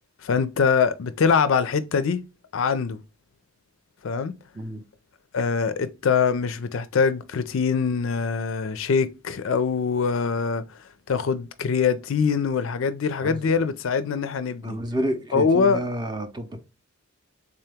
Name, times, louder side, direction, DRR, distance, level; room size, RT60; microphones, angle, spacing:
voice 1, 0.2-2.2 2.5-3.0 4.0-4.3 5.3-10.6 11.1-14.8 15.3-15.8, left 5 dB, 60° left, 0.4 m, -23 dB
voice 2, 13.2-13.5 14.6-16.7, right 1 dB, 20° right, 0.5 m, -30 dB
3.7 x 2.8 x 3.4 m
head